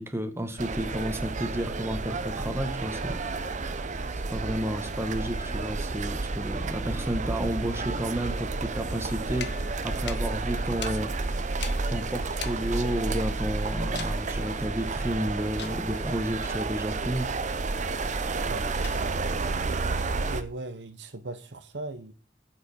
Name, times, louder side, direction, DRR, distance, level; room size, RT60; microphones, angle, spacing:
voice 1, 0.0-17.3, right 1 dB, 15° right, 1.4 m, -32 dB
sound 1, 0.6-20.4, right 3 dB, 45° right, 0.7 m, -31 dB
sound 2, 9.3-13.4 14.0-14.3 15.6-16.1 18.8-19.5, left 9 dB, 70° left, 1.0 m, -43 dB
voice 2, 20.3-22.1, right 2 dB, 75° right, 1.0 m, -38 dB
14.0 x 7.8 x 4.5 m
head